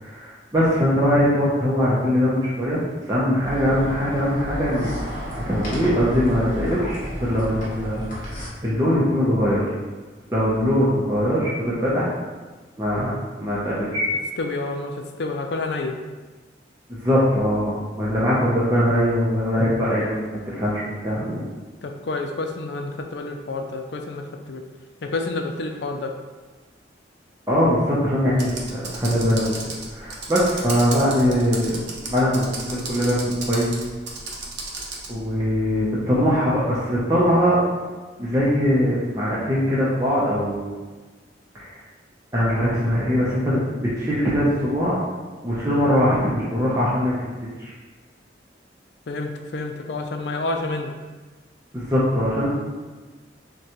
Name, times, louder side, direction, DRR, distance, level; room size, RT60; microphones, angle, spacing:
voice 1, 0.0-2.8 3.1-4.9 5.5-9.7 10.3-12.1 12.8-14.1 16.9-21.5 27.5-29.5 29.9-31.8 32.0-33.7 35.1-37.6 38.2-40.7 41.5-41.8 42.3-45.0 45.4-47.1 47.6-47.7 51.7-52.5, equal, 15° right, -8 dB, 0.6 m, -21 dB
sound 1, 3.4-8.5, equal, 45° left, 1.1 m, -32 dB
voice 2, 14.4-16.0 21.8-24.7 25.0-26.2 49.1-50.9, left 2 dB, 70° left, 4 dB, 0.4 m, -29 dB
Computer keyboard, 28.3-35.1, right 3 dB, 75° right, 0.7 m, -34 dB
6.1 x 2.2 x 2.9 m, 1.3 s
head